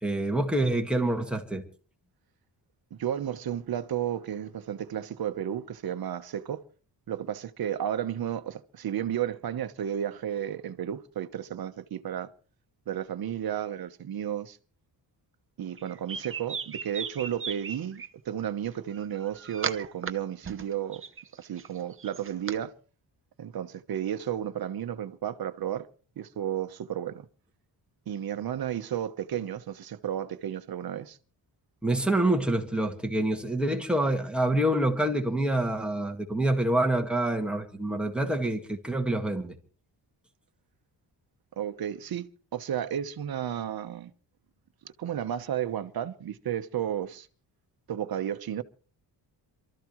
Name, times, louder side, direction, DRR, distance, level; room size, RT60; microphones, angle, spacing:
voice 1, 0.0-1.6 31.8-39.5, right 1 dB, ahead, 1.9 m, -26 dB
voice 2, 2.9-6.6 7.1-12.3 12.9-14.6 15.6-21.0 21.4-22.7 23.4-25.9 26.2-27.3 28.1-31.2 41.6-44.1 45.0-47.3 47.9-48.6, right 10 dB, 55° right, 1.1 m, -33 dB
sound 1, 15.8-18.1 18.9-20.1 20.4-22.6, right 6 dB, 30° right, 0.9 m, -37 dB
27.5 x 13.5 x 3.2 m
wide cardioid pair, 170°, 44 cm